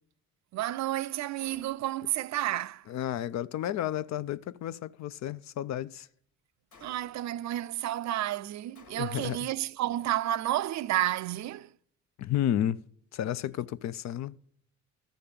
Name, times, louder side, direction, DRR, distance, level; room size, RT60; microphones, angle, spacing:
voice 1, 0.5-2.8 6.8-11.7, right 13 dB, 65° right, 0.4 m, -31 dB
Gunshot gunfire, 1.4-2.1 6.7-7.4 8.8-9.4, left 4 dB, 80° left, 1.7 m, -57 dB
voice 2, 2.9-6.1 9.0-9.5 12.2-12.8 13.1-14.3, left 11 dB, 65° left, 0.5 m, -32 dB
13.0 x 5.2 x 8.5 m
cardioid pair, 90°, 30 cm